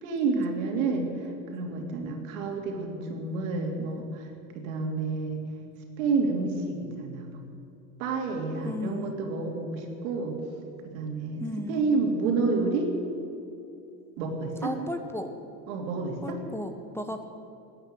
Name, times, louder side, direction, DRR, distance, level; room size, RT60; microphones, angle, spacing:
voice 1, 0.0-4.3 4.5-5.4 6.0-7.4 8.0-10.3 10.8-12.9 14.2-14.7 15.7-16.4, right 4 dB, 75° right, 3 dB, 3.2 m, -29 dB
voice 2, 8.5-9.1 11.4-11.9 14.6-15.3 16.2-17.2, left 1 dB, 5° left, 7 dB, 0.9 m, -34 dB
15.5 x 10.0 x 9.2 m, 2.6 s
supercardioid pair, 115°, 42 cm